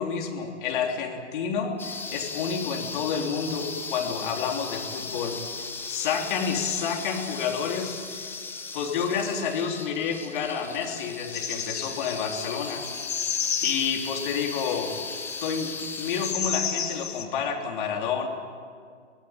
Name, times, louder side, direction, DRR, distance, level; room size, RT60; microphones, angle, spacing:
voice 1, 0.0-5.4 5.9-8.0 8.7-12.8 13.6-14.9 15.4-18.3, left 6 dB, 40° left, 2 dB, 3.6 m, -29 dB
sound 1, 1.8-16.3, left 4 dB, 5° left, 1.0 m, -37 dB
sound 2, 11.3-17.2, left 7 dB, 55° left, 2.1 m, -32 dB
25.0 x 18.0 x 9.2 m, 2.1 s
figure-of-eight pair, 125°, 36 cm